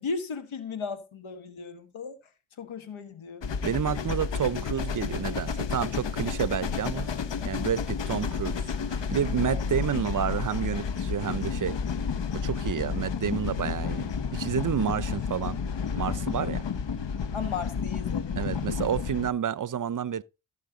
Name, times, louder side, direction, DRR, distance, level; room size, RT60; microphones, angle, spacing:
voice 1, 0.0-2.2 2.6-3.5 7.8-7.9 9.5-9.6 16.3-16.5 17.3-18.6, left 5 dB, 80° left, 1.5 m, -36 dB
sound 1, 3.4-19.3, left 6 dB, 65° left, 1.1 m, -31 dB
voice 2, 3.6-7.1 7.4-8.6 8.9-11.8 12.3-15.6 16.0-16.7 18.4-20.2, right 8 dB, 45° right, 0.6 m, -30 dB
14.5 x 5.7 x 3.8 m
cardioid pair, 40°, 47 cm